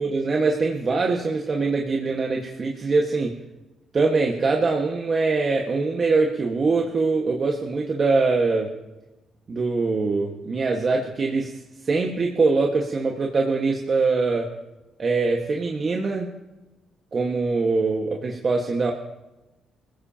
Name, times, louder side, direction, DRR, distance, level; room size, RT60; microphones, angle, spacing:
voice 1, 0.0-3.3 3.9-8.7 9.5-11.6 11.8-14.5 15.0-16.3 17.1-18.9, right 3 dB, 40° right, 0 dB, 1.6 m, -23 dB
25.0 x 16.0 x 2.9 m, 1.0 s
cardioid pair, 90°, 0 cm